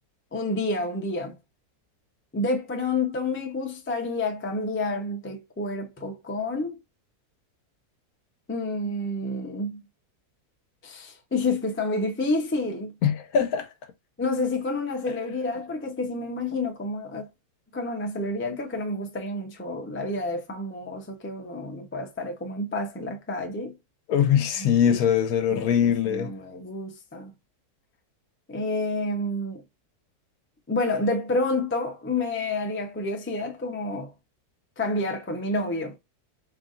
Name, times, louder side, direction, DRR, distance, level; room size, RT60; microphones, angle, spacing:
voice 1, 0.3-1.3 2.3-6.8 8.5-9.8 10.8-12.9 14.2-17.3 17.7-23.7 24.6-25.0 25.5-27.3 28.5-29.6 30.7-34.1 34.8-36.0, left 2 dB, 20° left, 0.3 m, -29 dB
voice 2, 13.0-13.7 24.1-26.3, left 8 dB, 70° left, 1.1 m, -22 dB
3.8 x 3.3 x 2.4 m
omnidirectional pair, 1.7 m